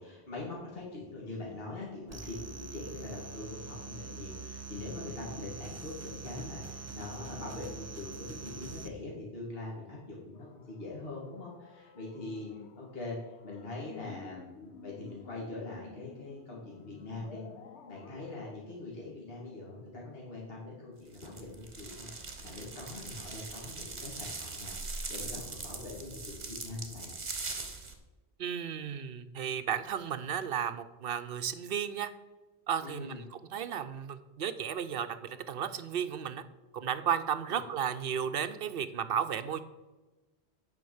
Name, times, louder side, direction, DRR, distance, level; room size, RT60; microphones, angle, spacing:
voice 1, 0.0-13.2 13.4-17.4 17.9-27.1 32.8-33.2 37.5-37.6, left 2 dB, 60° left, -5 dB, 2.4 m, -43 dB
sound 1, 2.1-8.9, right 4 dB, 20° right, 0.5 m, -44 dB
sound 2, 10.3-18.5, left 5 dB, 90° left, 1.2 m, -52 dB
sound 3, 21.1-27.9, right 3 dB, 40° right, 1.3 m, -41 dB
voice 2, 28.4-32.1 32.7-36.4 36.7-39.6, right 8 dB, 60° right, 12 dB, 0.8 m, -34 dB
9.5 x 5.2 x 7.1 m, 1.1 s
omnidirectional pair, 1.1 m